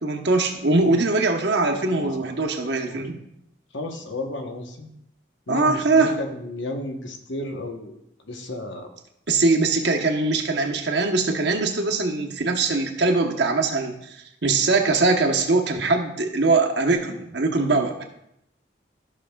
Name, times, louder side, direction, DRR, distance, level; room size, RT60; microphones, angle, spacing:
voice 1, 0.0-3.2 5.5-6.1 9.3-14.2 14.4-18.0, right 3 dB, 70° right, 2 dB, 1.0 m, -22 dB
voice 2, 3.7-4.9 5.5-8.0 8.3-8.9, left 1 dB, 85° left, 4 dB, 1.1 m, -33 dB
13.5 x 6.1 x 2.3 m, 0.79 s
head